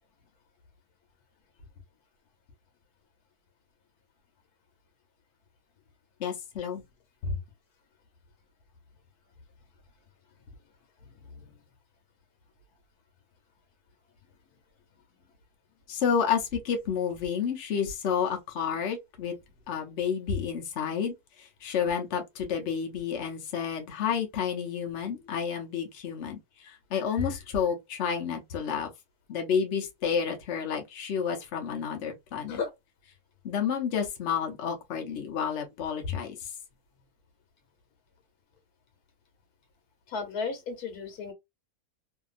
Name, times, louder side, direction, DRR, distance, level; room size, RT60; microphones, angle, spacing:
voice 1, 6.2-6.8 7.2-7.4 15.9-19.4 19.7-28.9 29.3-32.6 33.4-36.5, left 7 dB, 55° left, 0.9 m, -30 dB
voice 2, 11.1-11.6 32.5-32.7 40.1-41.3, left 4 dB, 75° left, 1.4 m, -35 dB
2.8 x 2.6 x 2.4 m
omnidirectional pair, 1.6 m